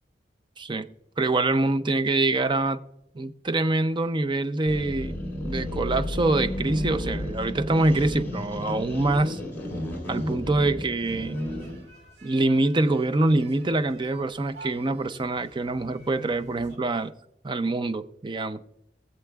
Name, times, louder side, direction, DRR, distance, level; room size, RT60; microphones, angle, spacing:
voice 1, 0.6-2.8 3.1-5.1 5.4-9.4 10.1-11.4 12.2-17.1 17.4-18.6, right 2 dB, 25° right, 0.5 m, -25 dB
sound 1, 4.7-11.9, left 1 dB, 15° left, 3.7 m, -32 dB
sound 2, 11.0-16.8, right 2 dB, 70° right, 1.9 m, -50 dB
22.5 x 7.6 x 2.3 m
head